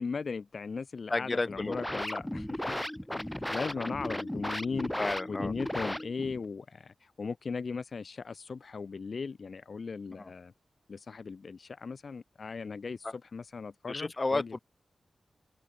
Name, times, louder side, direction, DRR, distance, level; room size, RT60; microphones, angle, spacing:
voice 1, 0.0-2.8 3.1-4.9 5.3-10.5 10.9-14.5, left 5 dB, 60° left, 1.5 m, -38 dB
voice 2, 1.1-1.8 4.9-5.5 10.2-10.3 13.9-14.6, left 2 dB, 35° left, 3.4 m, -31 dB
sound 1, 1.5-6.4, left 1 dB, 5° left, 0.9 m, -36 dB
open air
wide cardioid pair, 80°, 0 cm